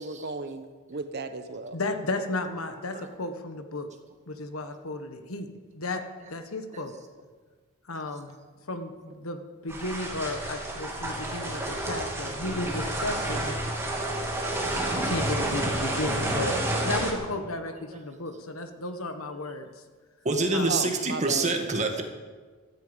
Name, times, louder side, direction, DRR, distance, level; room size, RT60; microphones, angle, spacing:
voice 1, 0.0-1.8 20.7-21.6, right 3 dB, 50° right, 10 dB, 1.0 m, -35 dB
voice 2, 1.7-3.9 4.3-6.0 6.3-6.9 7.8-8.4 8.7-13.6 14.6-16.6 16.8-19.7 20.5-20.7, left 2 dB, 70° left, 7 dB, 1.4 m, -34 dB
voice 3, 2.4-3.1 12.3-12.7 17.9-18.0 20.3-22.0, right 3 dB, 35° right, 3 dB, 1.8 m, -28 dB
sound 1, 9.7-17.1, right 1 dB, 10° right, 2.8 m, -30 dB
16.0 x 14.0 x 5.3 m, 1.4 s
head